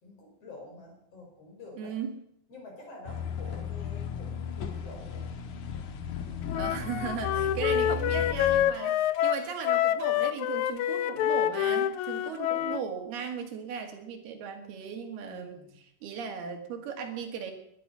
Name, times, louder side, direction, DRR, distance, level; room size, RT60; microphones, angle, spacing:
voice 1, 0.0-2.0 2.5-5.3 15.3-15.8, left 2 dB, 40° left, 0 dB, 5.8 m, -48 dB
voice 2, 1.8-2.1 6.5-17.5, right 6 dB, 90° right, 5 dB, 4.1 m, -37 dB
sound 1, 3.1-8.7, left 6 dB, 60° left, 2.5 m, -36 dB
Wind instrument woodwind instrument, 6.5-12.8, left 11 dB, 90° left, 1.7 m, -27 dB
20.5 x 12.0 x 5.6 m, 0.72 s
omnidirectional pair, 4.3 m